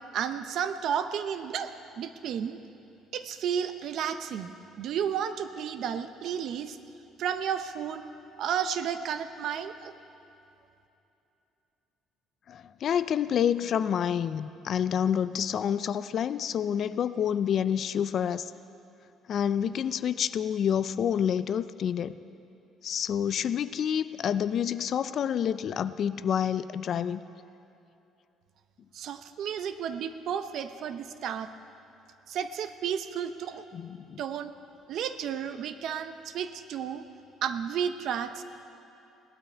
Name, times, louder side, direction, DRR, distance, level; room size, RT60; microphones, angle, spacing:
voice 1, 0.1-2.6 3.1-6.8 7.2-8.0 8.4-9.9 28.9-31.5 32.3-33.6 34.2-34.5 34.9-37.0 37.4-38.4, right 8 dB, 60° right, 10 dB, 0.6 m, -32 dB
voice 2, 12.5-18.5 19.3-22.1 22.8-27.2 33.7-34.2, left 8 dB, 45° left, 14 dB, 0.3 m, -28 dB
18.0 x 12.0 x 4.5 m, 2.8 s
cardioid pair, 140°, 0 cm